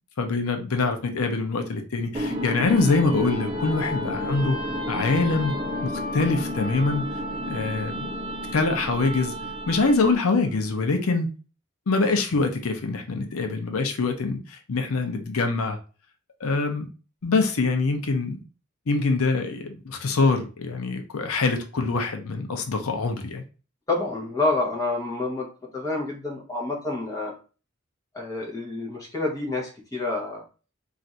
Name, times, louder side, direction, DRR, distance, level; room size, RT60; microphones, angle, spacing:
voice 1, 0.2-4.6 4.9-5.6 5.8-7.1 7.5-8.1 8.5-9.3 9.7-11.3 11.9-15.8 16.4-16.9 17.2-18.4 18.9-23.4, left 3 dB, 90° left, 0.6 m, -24 dB
sound 1, 2.1-10.3, equal, 25° right, 0.5 m, -31 dB
voice 2, 23.9-25.5 25.7-27.3 28.1-30.4, left 2 dB, 15° left, 0.8 m, -28 dB
2.5 x 2.4 x 4.1 m
head